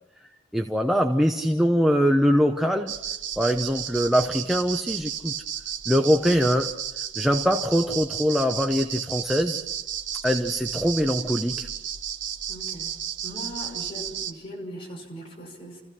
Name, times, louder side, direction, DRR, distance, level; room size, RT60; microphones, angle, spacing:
voice 1, 0.5-2.9 3.4-5.3 5.9-6.7 7.2-9.6 10.2-11.7, equal, ahead, 3 dB, 0.8 m, -22 dB
sound 1, 2.9-14.3, right 9 dB, 75° right, 1.1 m, -33 dB
voice 2, 12.5-13.0 13.2-15.8, equal, 30° left, -2 dB, 5.7 m, -39 dB
29.0 x 15.5 x 6.0 m, 1.0 s
head